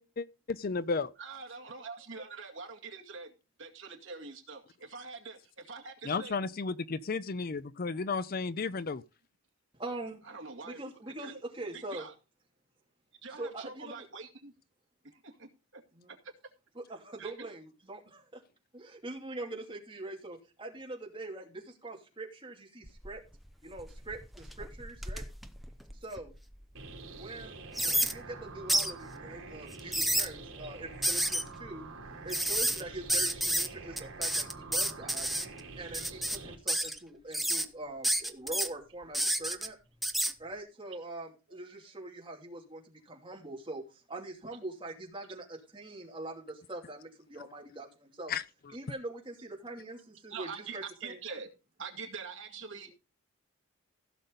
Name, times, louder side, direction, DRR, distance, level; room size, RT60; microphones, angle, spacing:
voice 1, 0.0-1.1 6.1-9.0 48.3-48.4, left 4 dB, 45° left, 0.5 m, -33 dB
voice 2, 1.2-3.3 3.6-6.4 10.2-10.8 11.1-11.4 11.7-12.1 13.2-14.5 15.0-15.8 16.1-16.3 17.2-17.3 50.3-51.5 51.8-52.9, right 5 dB, 60° right, 2.1 m, -44 dB
voice 3, 9.7-10.2 10.6-12.1 13.4-14.0 15.9-16.1 16.7-18.4 18.7-23.2 23.6-25.2 26.0-26.3 27.2-31.9 32.2-35.3 35.8-39.8 40.4-48.3 48.7-51.2, right 2 dB, 25° right, 2.9 m, -43 dB
sound 1, 22.8-23.3 23.8-26.4 26.9-27.0 27.7-28.1 28.7-28.9 29.7-30.3 31.0-31.4 32.3-32.8 33.1-33.7 34.0-35.4 35.9-36.4 36.7-37.0 37.3-37.6 38.0-38.7 39.1-39.7 40.0-40.3, right 1 dB, ahead, 0.6 m, -30 dB
sound 2, 26.7-36.6, right 3 dB, 75° right, 3.1 m, -46 dB
16.0 x 6.7 x 3.9 m
head